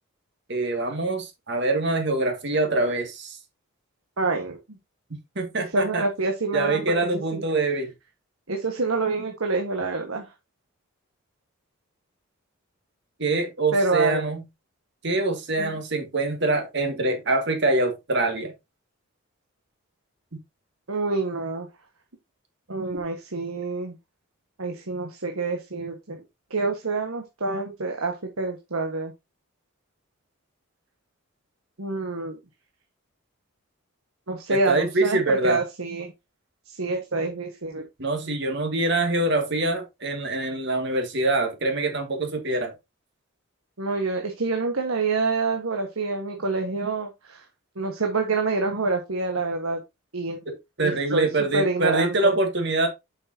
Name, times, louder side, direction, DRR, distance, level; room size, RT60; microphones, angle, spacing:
voice 1, 0.5-3.4 5.4-6.0 6.5-7.9 13.2-14.4 15.0-18.5 34.5-35.6 38.0-42.7 50.5-52.9, right 2 dB, 55° right, 2.2 m, -24 dB
voice 2, 4.2-4.6 5.7-6.9 7.3-7.4 8.5-10.2 13.7-14.2 15.6-15.7 20.9-21.7 22.7-24.0 24.6-26.2 26.5-29.1 31.8-32.4 34.3-35.2 35.4-36.1 36.7-37.8 43.8-47.4 47.7-49.8 50.1-50.4 50.8-51.3 51.5-52.3, right 3 dB, 85° right, 1.5 m, -27 dB
7.9 x 6.5 x 2.8 m
head